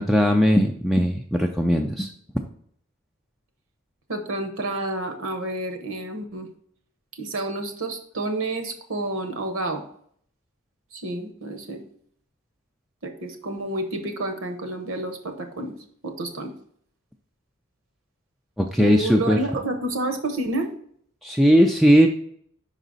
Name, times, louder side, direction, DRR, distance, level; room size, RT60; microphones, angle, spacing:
voice 1, 0.0-2.1 18.6-19.4 21.2-22.1, equal, ahead, 2 dB, 0.3 m, -18 dB
voice 2, 4.1-6.5 7.2-9.8 10.9-11.8 13.0-15.7 16.0-16.5 18.8-20.7, right 2 dB, 65° right, 6 dB, 0.9 m, -29 dB
5.4 x 5.0 x 3.9 m, 0.63 s
head